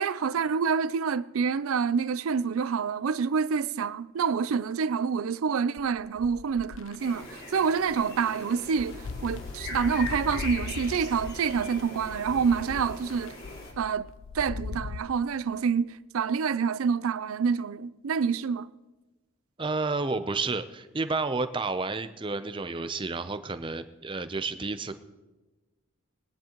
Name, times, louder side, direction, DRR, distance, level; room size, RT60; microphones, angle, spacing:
voice 1, 0.0-13.4 13.8-14.1 14.3-18.7, right 6 dB, 85° right, 0.4 m, -27 dB
sound 1, 5.8-7.0 7.7-7.8 8.1-15.0, left 4 dB, 70° left, 0.5 m, -39 dB
sound 2, 7.0-13.7, left 2 dB, 50° left, 2.3 m, -41 dB
voice 2, 19.6-24.9, right 3 dB, 25° right, 0.5 m, -31 dB
22.0 x 10.0 x 3.0 m
head